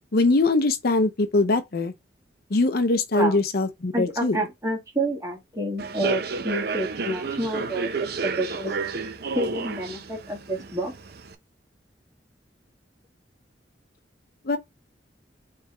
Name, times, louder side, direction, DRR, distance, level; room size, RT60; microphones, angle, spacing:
voice 1, 0.1-1.9 2.5-4.4 14.4-14.6, left 2 dB, 60° left, 0.7 m, -22 dB
voice 2, 3.9-8.8 9.3-10.9, right 1 dB, 20° right, 1.8 m, -29 dB
Human voice / Subway metro underground, 5.8-11.3, right 4 dB, 60° right, 0.7 m, -31 dB
4.5 x 3.4 x 3.3 m
head